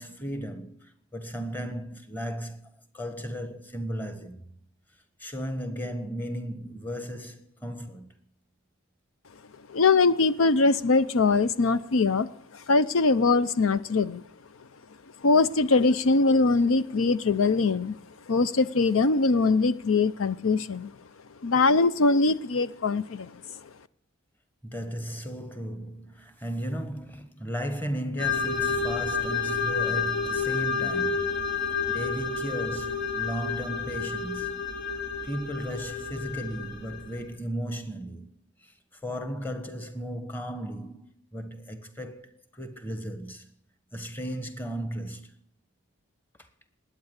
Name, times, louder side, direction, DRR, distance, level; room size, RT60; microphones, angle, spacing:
voice 1, 0.0-4.5 5.2-8.1 24.6-31.3 31.9-34.6 35.2-38.3 38.6-38.7 39.0-43.5 43.9-45.3, equal, 10° left, 1.4 m, -35 dB
voice 2, 9.7-12.3 12.5-14.2 15.2-18.0 18.3-20.9 21.4-23.3, left 3 dB, 75° left, 0.6 m, -22 dB
sound 1, 28.2-37.2, left 5 dB, 55° left, 2.5 m, -30 dB
20.0 x 8.7 x 8.1 m
head